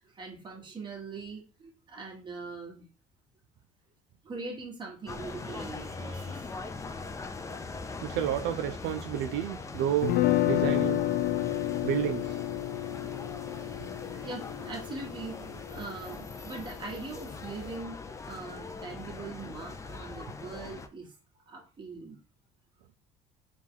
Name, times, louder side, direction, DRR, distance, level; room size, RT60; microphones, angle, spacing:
voice 1, 0.2-2.9 4.2-6.5 14.1-21.1 21.5-22.2, right 3 dB, 25° right, 1.5 m, -42 dB
sound 1, 5.1-20.9, left 4 dB, 20° left, 0.4 m, -41 dB
voice 2, 8.0-10.2 10.4-11.0 11.8-12.4, right 11 dB, 75° right, 0.4 m, -30 dB
sound 2, 10.0-16.0, left 14 dB, 75° left, 0.4 m, -30 dB
4.6 x 2.4 x 3.7 m
cardioid pair, 105°, 17 cm